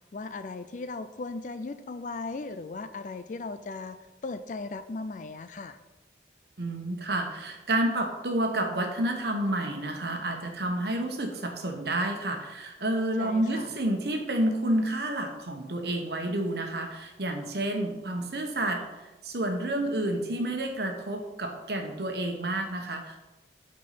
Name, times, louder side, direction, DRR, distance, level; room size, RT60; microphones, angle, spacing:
voice 1, 0.1-4.0 4.2-5.8 13.2-13.7, left 3 dB, 45° left, 12 dB, 0.4 m, -37 dB
voice 2, 6.6-18.8 19.2-23.2, right 1 dB, 65° right, 3 dB, 1.1 m, -29 dB
6.1 x 4.5 x 5.8 m, 1.1 s
head